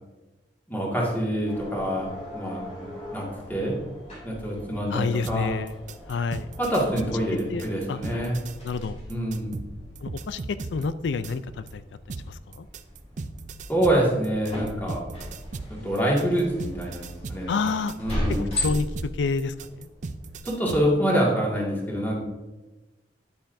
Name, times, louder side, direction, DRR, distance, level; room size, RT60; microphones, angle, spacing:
voice 1, 0.7-2.9 3.1-3.2 3.5-3.8 4.2-5.6 6.6-8.4 9.1-9.5 13.7-15.0 15.7-17.5 18.0-18.4 20.5-22.2, right 1 dB, 10° left, -4 dB, 2.0 m, -26 dB
sound 1, 1.5-20.4, left 1 dB, 40° left, 2.7 m, -38 dB
voice 2, 4.9-5.8 6.1-6.5 7.5-7.6 7.9-8.3 8.6-9.0 10.0-11.8 12.3-12.7 17.5-17.9 18.6-19.9, left 4 dB, 80° left, 15 dB, 0.4 m, -29 dB
sound 2, 5.2-11.7 12.1-20.9, right 3 dB, 45° right, 0.4 m, -38 dB
9.6 x 8.6 x 2.6 m, 1.2 s
head